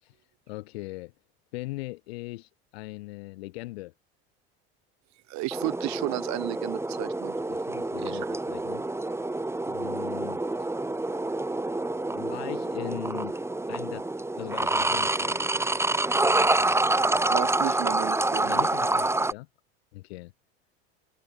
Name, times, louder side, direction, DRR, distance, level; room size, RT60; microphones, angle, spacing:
voice 1, 0.5-1.1 1.5-3.9 7.5-9.0 9.7-10.4 12.1-13.3 13.7-14.1 14.4-15.5 18.4-19.5 19.9-20.3, left 20 dB, 80° left, 3.0 m, -39 dB
voice 2, 5.3-7.4 8.0-8.2 17.3-18.7, right 21 dB, 60° right, 1.6 m, -33 dB
sound 1, 5.5-19.3, right 2 dB, 10° right, 1.5 m, -27 dB
hypercardioid pair, 80°, 31 cm